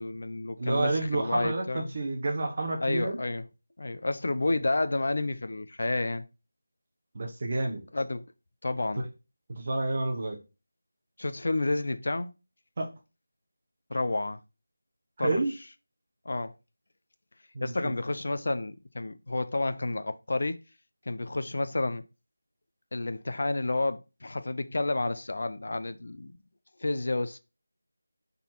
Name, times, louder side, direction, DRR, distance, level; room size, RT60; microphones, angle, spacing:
voice 1, 0.0-1.9 2.8-3.4 3.8-6.3 7.9-8.3 8.6-9.1 11.2-12.3 13.9-14.4 15.2-15.4 16.2-16.5 17.6-20.6 21.1-22.0 22.9-26.3 26.8-27.4, left 2 dB, 45° left, 0.7 m, -30 dB
voice 2, 0.6-3.2 7.1-7.8 9.0-9.1 9.5-10.4 12.8-12.9 15.2-15.5 17.5-17.7, right 2 dB, 25° right, 1.2 m, -29 dB
7.2 x 4.0 x 4.5 m
figure-of-eight pair, 180°, 0 cm